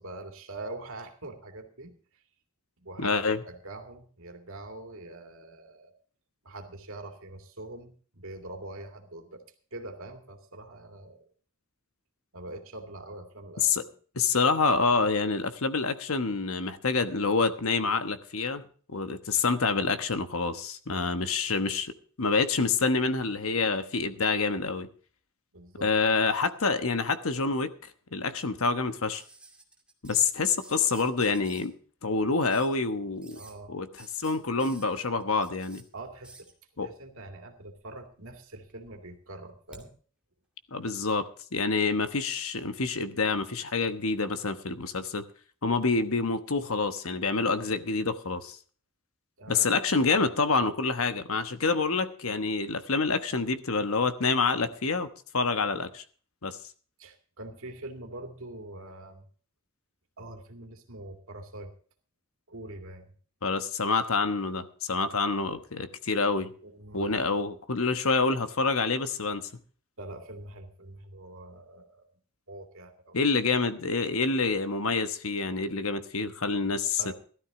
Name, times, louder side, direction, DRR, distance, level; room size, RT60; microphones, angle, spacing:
voice 1, 0.0-2.0 2.8-5.9 6.4-9.4 9.7-11.2 12.3-13.9 20.9-21.3 25.5-25.9 33.3-33.8 35.9-36.5 36.8-39.9 49.4-49.7 57.0-59.3 60.2-61.7 62.5-63.1 66.6-67.3 70.0-72.1 72.5-73.2 77.0-77.1, right 2 dB, 70° right, 4 dB, 2.4 m, -44 dB
voice 2, 3.0-3.4 13.6-13.8 14.1-18.6 18.9-21.9 22.2-24.9 25.8-27.7 28.1-29.2 30.0-31.7 32.0-33.4 33.7-33.9 34.2-35.8 36.8-36.9 40.7-41.2 41.5-45.2 45.6-48.6 49.5-55.1 55.3-56.0 56.4-56.6 63.4-66.5 66.9-69.5 73.1-77.0, left 4 dB, 70° left, 10 dB, 1.2 m, -27 dB
sound 1, 29.1-30.3 30.6-31.7 32.5-32.8 33.2-33.5 34.0-35.8 36.2-36.5 37.6-38.2 38.5-39.9 41.2-41.3, right 2 dB, 5° right, 2.3 m, -52 dB
15.0 x 13.0 x 3.7 m, 0.42 s
head